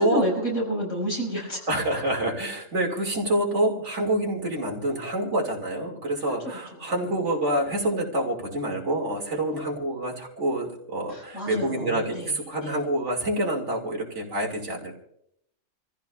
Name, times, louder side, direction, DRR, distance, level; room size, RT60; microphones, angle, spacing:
voice 1, 0.0-1.6 6.7-6.8 11.1-12.3 12.6-12.8, equal, 85° left, -3 dB, 5.7 m, -29 dB
voice 2, 1.7-14.9, right 1 dB, 65° right, 0 dB, 2.6 m, -27 dB
27.5 x 15.0 x 2.3 m, 0.76 s
omnidirectional pair, 1.3 m